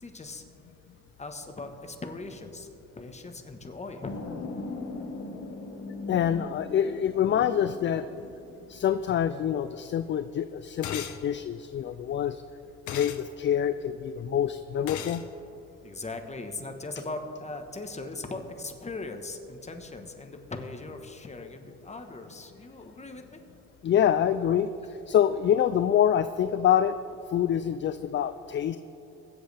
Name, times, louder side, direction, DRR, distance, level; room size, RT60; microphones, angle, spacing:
voice 1, 0.0-0.4 1.2-2.7 3.0-4.2 15.8-23.4, left 2 dB, 20° left, 6 dB, 1.3 m, -39 dB
sound 1, 4.0-9.0, left 3 dB, 55° left, 1.5 m, -39 dB
voice 2, 6.1-8.2 8.7-12.4 12.9-15.2 23.8-27.0 27.3-28.8, left 9 dB, 40° left, 12 dB, 0.4 m, -26 dB
sound 2, 10.8-11.2 12.9-13.2 14.9-15.2, left 9 dB, 75° left, 0.9 m, -36 dB
22.5 x 7.9 x 3.4 m, 3.0 s
cardioid pair, 90°, 30 cm